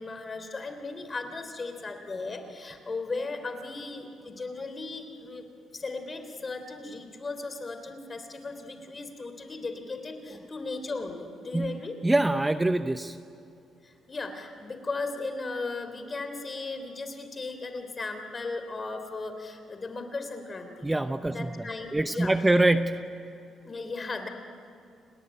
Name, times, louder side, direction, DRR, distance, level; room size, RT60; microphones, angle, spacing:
voice 1, 0.0-5.5 5.7-12.0 13.8-20.9 21.3-22.3 23.6-24.3, left 3 dB, 30° left, 7 dB, 3.5 m, -36 dB
voice 2, 11.5-13.2 20.8-21.6 21.9-23.1, right 2 dB, 15° right, 10 dB, 0.7 m, -25 dB
29.5 x 19.0 x 9.1 m, 2.6 s
cardioid pair, 90°, 0 cm